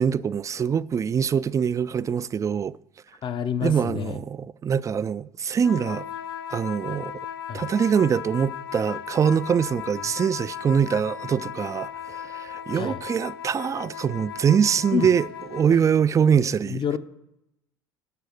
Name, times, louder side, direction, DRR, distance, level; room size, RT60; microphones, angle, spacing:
voice 1, 0.0-2.7 3.6-6.1 6.5-7.1 7.5-15.2 15.5-16.8, right 7 dB, 25° right, 0.3 m, -23 dB
voice 2, 3.2-4.2 7.5-7.7 12.7-13.0 14.9-15.1 16.6-17.0, left 8 dB, 40° left, 0.8 m, -28 dB
sound 1, 5.6-15.8, left 9 dB, 90° left, 0.4 m, -37 dB
12.5 x 4.9 x 8.0 m
hypercardioid pair, 65°, 12 cm